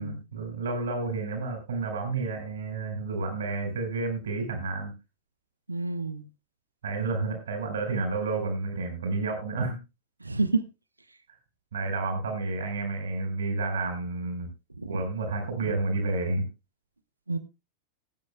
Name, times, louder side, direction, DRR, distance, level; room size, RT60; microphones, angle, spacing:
voice 1, 0.0-4.9 6.8-9.8 11.7-14.5 14.9-16.4, right 3 dB, 65° right, 5 dB, 5.3 m, -30 dB
voice 2, 5.7-6.3 10.2-10.6 14.8-15.0 17.3-17.4, right 3 dB, 80° right, 13 dB, 0.9 m, -29 dB
20.5 x 9.7 x 2.3 m, 0.26 s
figure-of-eight pair, 90°, 0 cm